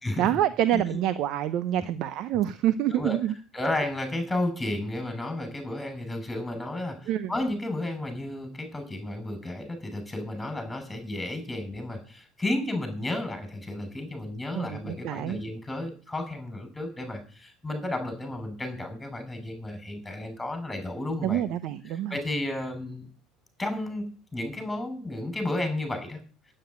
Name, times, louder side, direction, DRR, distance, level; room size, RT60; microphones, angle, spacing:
voice 1, 0.2-3.3 7.1-7.3 14.5-15.4 21.2-22.2, right 12 dB, 60° right, 13 dB, 0.8 m, -27 dB
voice 2, 3.5-21.4 21.9-23.0 23.6-26.2, left 1 dB, 10° left, 7 dB, 6.3 m, -32 dB
9.2 x 8.9 x 9.7 m, 0.38 s
supercardioid pair, 110°, 0 cm